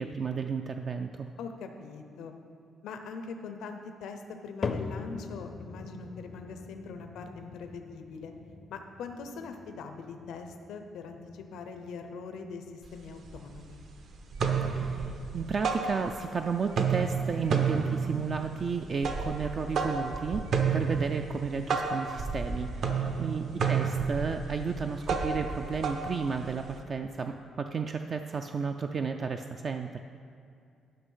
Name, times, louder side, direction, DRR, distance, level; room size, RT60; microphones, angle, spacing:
voice 1, 0.0-1.3 14.7-20.4 20.7-30.0, right 5 dB, 35° right, 5 dB, 0.3 m, -33 dB
voice 2, 1.4-2.3 2.8-8.3 8.7-13.8 22.9-23.3, left 4 dB, 80° left, 6 dB, 0.7 m, -42 dB
sound 1, 4.6-20.9 21.3-21.8 22.4-22.5 23.3-23.4, left 4 dB, 30° left, 0.5 m, -44 dB
sound 2, 12.8-12.9 13.3-13.9 14.2-16.4 16.7-26.8, right 5 dB, 50° right, 0.7 m, -31 dB
11.5 x 6.0 x 5.6 m, 2.4 s
cardioid pair, 165°, 0 cm